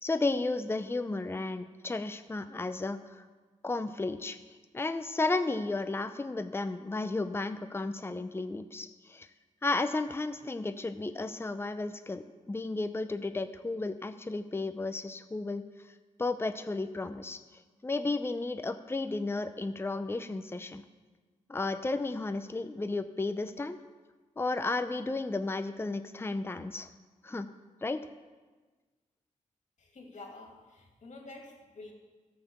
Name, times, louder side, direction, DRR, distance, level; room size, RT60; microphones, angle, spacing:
voice 1, 0.0-3.2 3.6-4.4 4.7-9.3 9.6-15.6 16.2-17.4 17.8-20.8 21.5-23.8 24.4-26.9 27.2-27.5 27.8-28.0, left 3 dB, 15° left, 9 dB, 0.6 m, -33 dB
voice 2, 29.8-31.9, left 2 dB, 60° left, 1 dB, 2.6 m, -48 dB
13.5 x 5.8 x 7.2 m, 1.3 s
cardioid pair, 60°, 14 cm